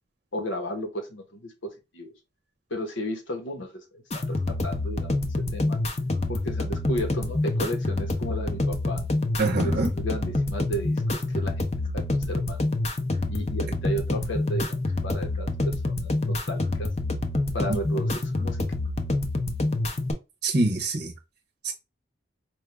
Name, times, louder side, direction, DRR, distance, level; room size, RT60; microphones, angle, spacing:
voice 1, 0.3-2.1 2.7-5.8 6.3-9.0 9.6-11.5 11.9-12.6 13.3-14.8 15.0-16.9 17.5-18.6, equal, 80° left, 1.2 m, -34 dB
sound 1, 4.1-20.1, left 2 dB, 35° left, 0.5 m, -27 dB
voice 2, 9.4-9.9 20.4-21.1 21.6-21.7, right 2 dB, 50° right, 0.7 m, -24 dB
4.4 x 2.4 x 3.2 m
head